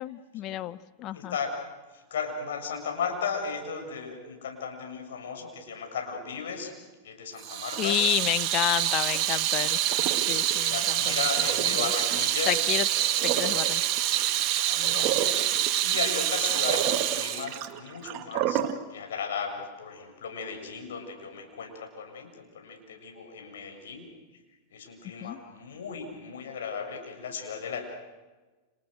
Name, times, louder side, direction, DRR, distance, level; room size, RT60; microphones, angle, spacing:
voice 1, 0.0-1.3 7.8-9.8 10.3-10.8 11.1-11.2 11.7-11.8 12.5-12.9 13.2-13.8 14.7-15.2 25.2-25.4, left 14 dB, 45° left, 16 dB, 1.1 m, -30 dB
voice 2, 1.1-1.6 1.9-6.7 7.0-8.0 10.5-12.6 14.6-15.5 15.8-18.6 18.9-24.1 24.7-27.9, left 6 dB, 75° left, 3 dB, 7.2 m, -35 dB
Water tap faucet / Sink (filling or washing), 7.4-18.8, right 12 dB, 45° right, 2.2 m, -26 dB
30.0 x 30.0 x 6.7 m, 1.2 s
hypercardioid pair, 100°, 0 cm